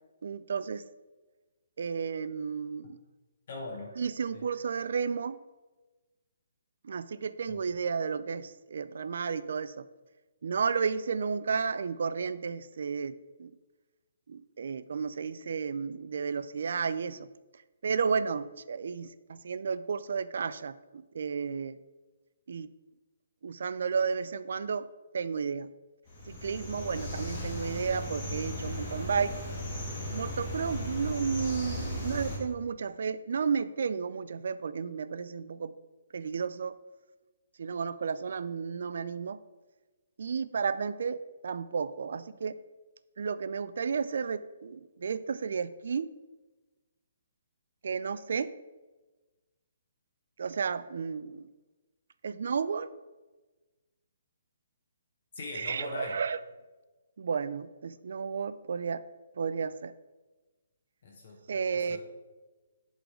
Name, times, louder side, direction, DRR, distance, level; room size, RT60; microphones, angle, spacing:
voice 1, 0.2-0.8 1.8-3.0 4.0-5.4 6.8-9.9 10.4-13.1 13.4-13.5 14.3-17.3 17.8-21.8 22.5-22.7 23.4-24.9 25.1-25.7 26.3-29.3 30.1-35.7 36.1-36.7 37.6-39.4 40.2-42.6 43.2-46.1 47.8-48.5 50.4-51.5 52.2-52.9 55.5-56.4 57.2-59.0 59.4-59.9 61.5-62.0, right 6 dB, 65° right, 15 dB, 0.3 m, -32 dB
voice 2, 3.5-3.9 4.3-4.5 7.5-7.6 55.3-56.2 61.0-62.0, left 2 dB, 50° left, 0 dB, 1.2 m, -41 dB
sound 1, 26.1-32.4, left 1 dB, 30° left, 1.9 m, -37 dB
7.9 x 3.8 x 4.9 m, 1.2 s
hypercardioid pair, 165°, 0 cm